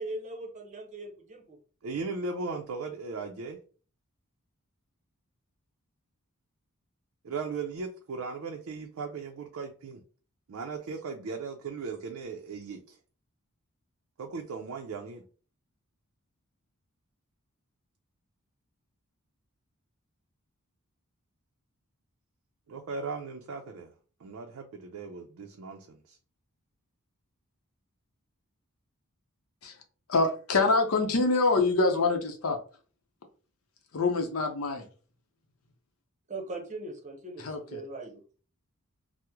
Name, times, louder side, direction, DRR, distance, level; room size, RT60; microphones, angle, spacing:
voice 1, 0.0-1.6 36.3-38.2, right 2 dB, 35° right, 2 dB, 0.7 m, -40 dB
voice 2, 1.8-3.6 7.2-10.0 10.5-13.0 14.2-15.2 22.7-23.9 24.2-26.2, right 4 dB, 70° right, 2 dB, 0.4 m, -37 dB
voice 3, 30.1-32.6 33.9-34.9 37.4-37.8, left 3 dB, 70° left, 5 dB, 0.6 m, -25 dB
3.0 x 2.0 x 3.5 m, 0.39 s
head